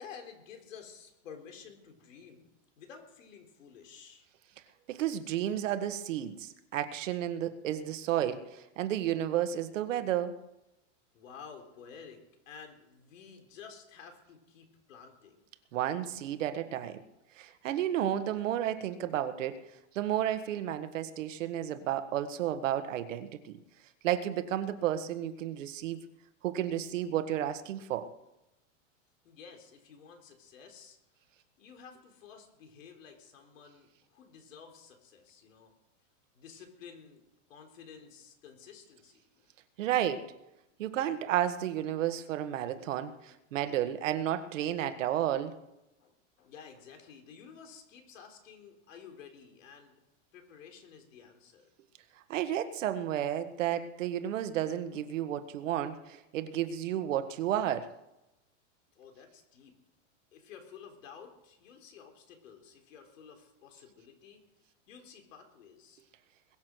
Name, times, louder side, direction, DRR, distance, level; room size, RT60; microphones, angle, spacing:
voice 1, 0.0-2.5 2.8-4.2 11.1-15.3 29.2-31.0 31.6-35.7 36.3-39.5 39.8-39.9 42.8-42.9 43.2-43.3 46.0-50.0 50.3-51.7 59.0-59.7 60.3-64.5 64.9-66.0, left 6 dB, 85° left, 4 dB, 4.0 m, -52 dB
voice 2, 4.9-10.4 15.7-17.0 17.4-19.6 19.9-23.6 24.0-26.0 26.4-28.1 39.8-40.3 40.8-45.5 52.3-57.9, right 11 dB, 75° right, 10 dB, 1.6 m, -32 dB
22.0 x 7.5 x 6.3 m, 0.90 s
supercardioid pair, 155°, 38 cm